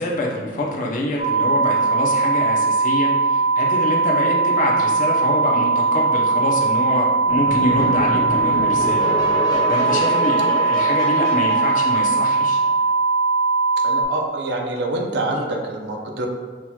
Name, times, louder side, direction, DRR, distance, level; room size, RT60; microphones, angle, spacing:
voice 1, 0.0-9.1 9.7-12.6, left 1 dB, 50° left, -1 dB, 0.7 m, -25 dB
sound 1, 1.2-14.0, right 4 dB, 85° left, 1.0 m, -19 dB
sound 2, 7.3-12.7, left 1 dB, 25° left, 1.0 m, -28 dB
voice 2, 13.8-16.3, right 2 dB, 70° right, 1 dB, 0.6 m, -26 dB
5.9 x 2.9 x 2.3 m, 1.5 s
head